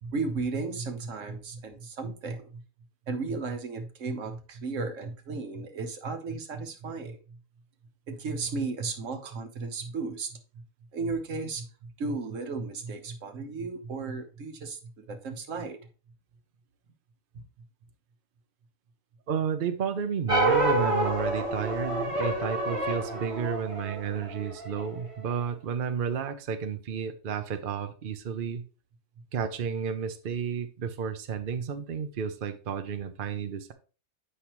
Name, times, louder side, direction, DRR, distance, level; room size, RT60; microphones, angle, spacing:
voice 1, 0.0-2.6 3.1-7.4 8.1-10.6 10.9-15.8 17.3-17.4, right 4 dB, 75° right, 6 dB, 1.4 m, -35 dB
voice 2, 19.3-28.6 29.3-33.7, right 7 dB, 50° right, 8 dB, 0.8 m, -32 dB
sound 1, 20.3-24.9, right 2 dB, 25° right, 1.7 m, -28 dB
8.4 x 5.6 x 3.0 m, 0.35 s
omnidirectional pair, 1.3 m